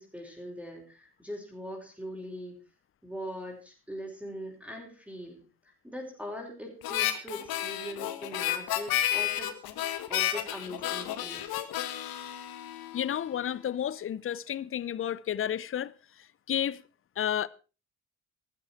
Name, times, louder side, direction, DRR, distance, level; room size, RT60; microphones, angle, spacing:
voice 1, 0.0-2.6 3.0-5.4 5.8-9.5 10.1-11.7, equal, 5° right, 5.6 m, -41 dB
Harmonica, 6.8-13.3, left 12 dB, 55° left, 1.7 m, -32 dB
voice 2, 12.9-16.8 17.2-17.5, left 10 dB, 30° left, 0.7 m, -32 dB
14.0 x 14.0 x 4.4 m
figure-of-eight pair, 55°, 44 cm